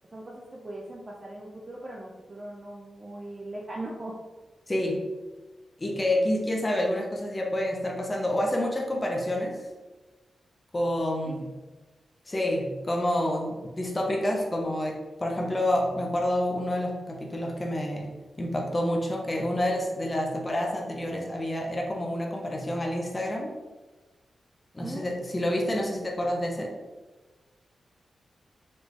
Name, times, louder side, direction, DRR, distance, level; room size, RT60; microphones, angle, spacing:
voice 1, 0.0-4.2 11.3-11.5 24.8-25.1, right 1 dB, 30° right, -3 dB, 0.5 m, -40 dB
voice 2, 4.7-5.1 5.8-9.7 10.7-11.5 12.3-23.5 24.7-26.7, left 1 dB, 20° left, -1 dB, 0.6 m, -28 dB
4.2 x 3.2 x 3.2 m, 1.2 s
wide cardioid pair, 125°, 0 cm